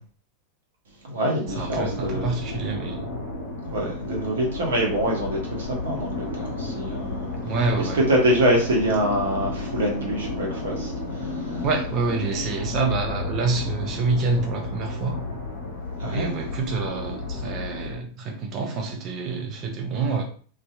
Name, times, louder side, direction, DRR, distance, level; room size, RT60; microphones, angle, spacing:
voice 1, 1.0-2.3 3.6-7.4 7.8-11.6 16.0-16.3, right 1 dB, 60° right, -1 dB, 0.8 m, -25 dB
sound 1, 1.4-18.0, left 2 dB, 55° left, 0.9 m, -32 dB
voice 2, 1.6-3.1 7.4-8.0 11.6-15.2 16.1-20.2, right 4 dB, 35° right, 2 dB, 0.6 m, -27 dB
2.6 x 2.4 x 2.4 m, 0.43 s
figure-of-eight pair, 90°, 0 cm